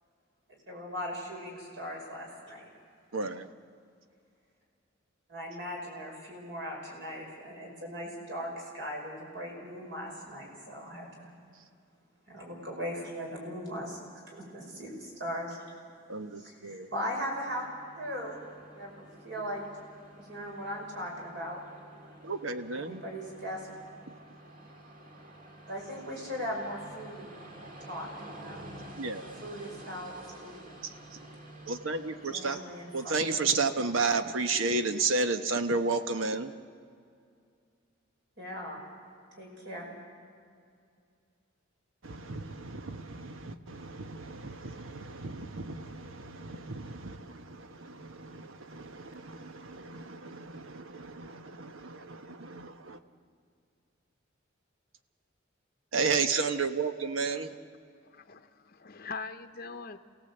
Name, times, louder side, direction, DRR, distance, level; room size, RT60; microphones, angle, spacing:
voice 1, 0.5-2.7 5.3-11.3 12.3-14.0 14.3-15.6 16.4-17.6 18.0-18.4 18.7-19.6 20.3-21.6 22.7-23.7 25.7-27.4 27.8-28.7 29.4-30.2 30.4-30.5 32.3-32.9 38.4-38.8 39.4-39.9, equal, 60° right, 0 dB, 5.5 m, -39 dB
voice 2, 3.1-3.5 16.1-16.9 22.2-23.0 29.0-29.3 30.8-30.9 31.7-32.6 32.9-36.5 42.0-53.0 55.9-57.5, right 4 dB, 85° right, 9 dB, 1.1 m, -32 dB
Train, 16.9-35.5, right 1 dB, 45° right, 2.2 m, -50 dB
voice 3, 58.0-60.0, left 4 dB, 50° left, 7 dB, 0.8 m, -42 dB
28.0 x 17.0 x 7.9 m, 2.3 s
head